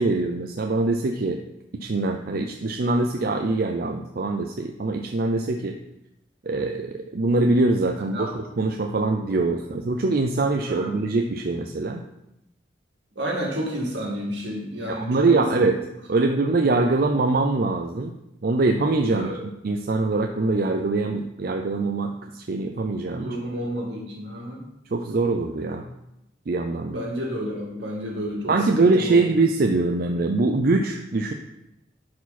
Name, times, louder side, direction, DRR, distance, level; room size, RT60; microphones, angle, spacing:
voice 1, 0.0-1.4 1.8-5.8 6.4-12.0 14.9-15.8 16.1-18.1 18.4-19.3 19.6-23.3 24.9-25.9 26.5-27.0 28.5-31.3, right 3 dB, 55° right, 4 dB, 0.5 m, -23 dB
voice 2, 13.2-15.6 16.5-16.7 19.1-19.4 23.1-24.7 26.8-29.2, equal, 80° right, -2 dB, 2.3 m, -31 dB
11.0 x 4.7 x 4.2 m, 0.85 s
head